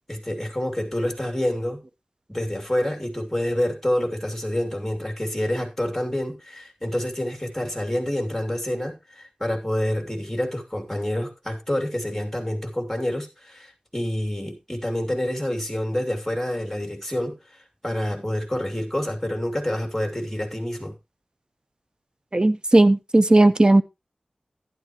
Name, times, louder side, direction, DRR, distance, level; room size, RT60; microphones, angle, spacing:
voice 1, 0.1-1.8 2.3-20.9, left 1 dB, 10° left, 3 dB, 2.8 m, -27 dB
voice 2, 22.3-23.8, right 2 dB, 35° right, 13 dB, 0.7 m, -16 dB
11.5 x 10.5 x 3.0 m, 0.23 s
wide cardioid pair, 60°, 3 cm